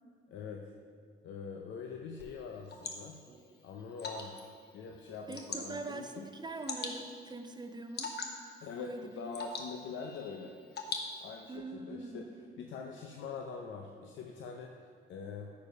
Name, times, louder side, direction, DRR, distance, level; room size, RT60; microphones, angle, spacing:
voice 1, 0.3-0.6 1.2-3.2 3.6-6.3 8.6-8.9 9.2-10.5 11.2-12.2 12.6-15.5, left 5 dB, 70° left, 2 dB, 0.7 m, -44 dB
Water / Drip, 2.2-11.6, left 4 dB, 55° left, 1.1 m, -44 dB
voice 2, 5.3-8.2 8.8-9.3 11.5-12.3, right 3 dB, 20° right, 7 dB, 0.6 m, -43 dB
9.3 x 4.8 x 5.3 m, 2.2 s
cardioid pair, 90°, 20 cm